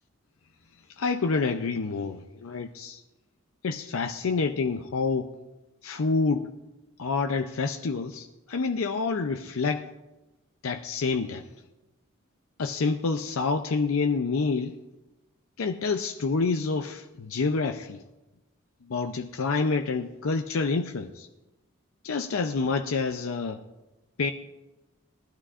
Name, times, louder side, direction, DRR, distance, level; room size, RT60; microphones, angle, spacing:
voice 1, 1.0-3.0 3.6-5.3 5.8-6.5 7.0-9.9 10.6-11.5 12.6-14.8 15.6-18.0 18.9-21.3 22.0-23.6 24.2-24.3, left 4 dB, 85° left, 5 dB, 0.5 m, -28 dB
19.0 x 12.5 x 2.5 m, 1.0 s
head